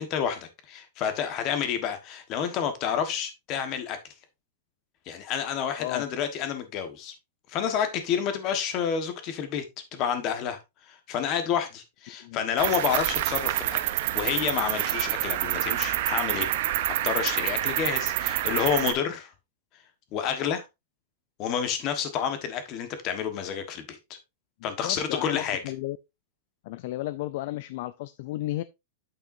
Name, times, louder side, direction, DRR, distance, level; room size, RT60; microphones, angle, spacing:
voice 1, 0.0-4.0 5.1-7.1 7.5-9.6 9.9-10.6 10.9-13.8 14.1-16.5 17.0-19.3 20.1-20.6 21.4-24.2 24.6-25.6, left 8 dB, 25° left, 1.3 m, -29 dB
Cricket, 12.6-18.9, right 14 dB, 45° right, 0.7 m, -27 dB
voice 2, 24.8-26.0 26.6-28.6, left 16 dB, 45° left, 0.3 m, -33 dB
8.8 x 6.7 x 2.6 m
supercardioid pair, 175°, 0 cm